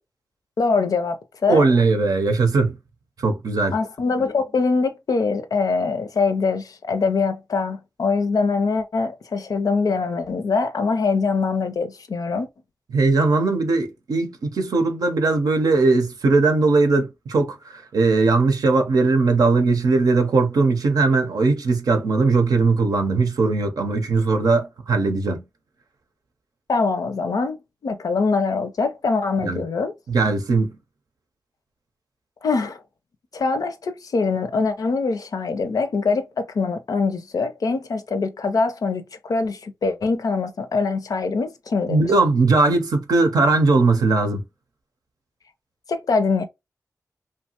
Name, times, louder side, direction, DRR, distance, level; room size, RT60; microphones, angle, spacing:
voice 1, 0.6-1.7 3.7-12.5 26.7-29.9 32.4-32.8 33.3-42.0 45.9-46.4, left 4 dB, 75° left, 0.5 m, -23 dB
voice 2, 1.5-2.8 3.2-3.7 12.9-25.4 29.4-29.6 30.1-30.8 41.9-44.4, right 3 dB, 85° right, 0.6 m, -19 dB
2.7 x 2.2 x 2.8 m
cardioid pair, 45°, 6 cm